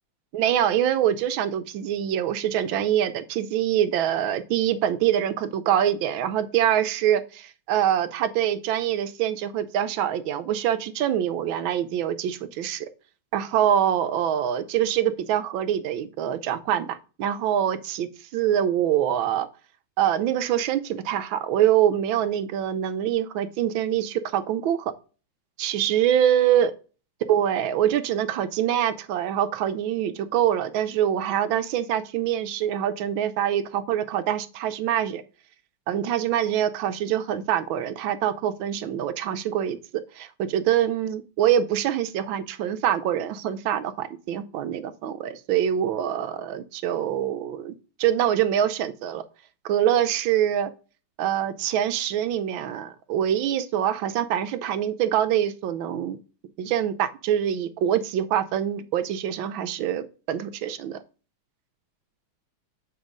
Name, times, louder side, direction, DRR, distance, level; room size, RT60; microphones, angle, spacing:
voice 1, 0.3-12.9 13.3-19.5 20.0-24.9 25.6-26.7 27.3-35.2 35.9-39.8 40.2-47.7 48.0-49.2 49.6-50.7 51.2-56.2 56.6-61.0, right 10 dB, 75° right, 12 dB, 1.4 m, -24 dB
7.2 x 5.1 x 3.8 m, 0.36 s
omnidirectional pair, 2.3 m